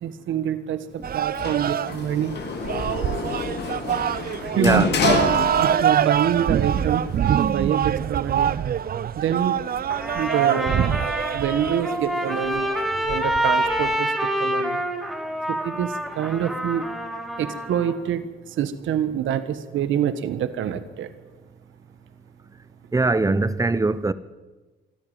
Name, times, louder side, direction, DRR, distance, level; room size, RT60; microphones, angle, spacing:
voice 1, 0.0-2.4 4.5-4.8 5.6-7.0 7.3-8.5 9.2-9.6 10.1-11.0 11.3-12.7 13.0-14.1 14.4-14.8 15.5-16.8 17.4-18.2 18.6-21.1, right 9 dB, 75° right, 1.5 m, -26 dB
sound 1, 1.0-14.0, right 9 dB, 50° right, 0.7 m, -25 dB
Sliding door, 1.4-6.2 6.5-7.5, left 5 dB, 60° left, 3.2 m, -28 dB
voice 2, 4.5-4.9 22.9-24.1, right 3 dB, 15° right, 1.0 m, -21 dB
Trumpet, 9.9-17.9, right 1 dB, ahead, 4.9 m, -27 dB
24.5 x 13.5 x 9.1 m
cardioid pair, 90°, 20 cm